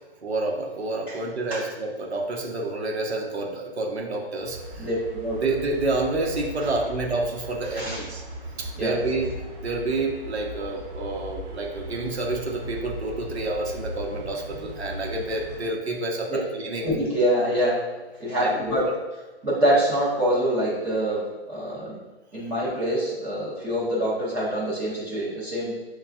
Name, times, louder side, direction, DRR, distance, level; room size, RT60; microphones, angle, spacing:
voice 1, 0.2-4.9 5.4-8.2 8.6-16.9 18.4-18.9, right 2 dB, 85° right, 0 dB, 0.8 m, -29 dB
sound 1, 4.4-15.7, equal, 25° right, 0.8 m, -38 dB
voice 2, 4.8-5.4 7.7-8.0 8.8-8.9 16.8-17.8 18.2-18.8 19.4-21.2 21.5-21.9 22.3-25.7, right 1 dB, 5° right, -12 dB, 0.4 m, -25 dB
5.9 x 2.3 x 2.3 m, 1.2 s
hypercardioid pair, 140°, 32 cm